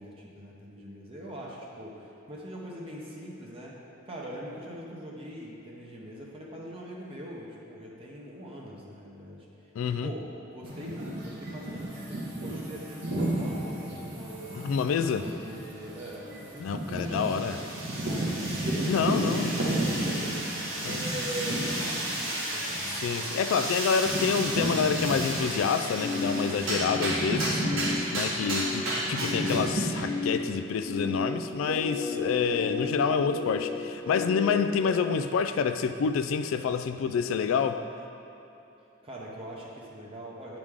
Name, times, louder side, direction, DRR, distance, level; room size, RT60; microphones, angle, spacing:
voice 1, 0.0-3.7 4.0-10.2 10.5-14.6 15.1-20.4 20.8-23.4 39.0-40.6, equal, 30° right, -4 dB, 0.8 m, -43 dB
voice 2, 9.8-10.1 14.5-15.3 16.6-17.6 18.8-19.5 20.8-21.0 22.9-27.6 28.1-37.8, left 6 dB, 80° left, 9 dB, 0.3 m, -28 dB
sound 1, 10.6-25.8 26.1-30.0, right 1 dB, 55° right, 1.1 m, -33 dB
sound 2, 17.0-30.2, right 1 dB, 80° right, 1.4 m, -33 dB
sound 3, 26.0-34.6, left 3 dB, 50° left, 0.9 m, -34 dB
9.0 x 5.0 x 3.6 m, 2.9 s
head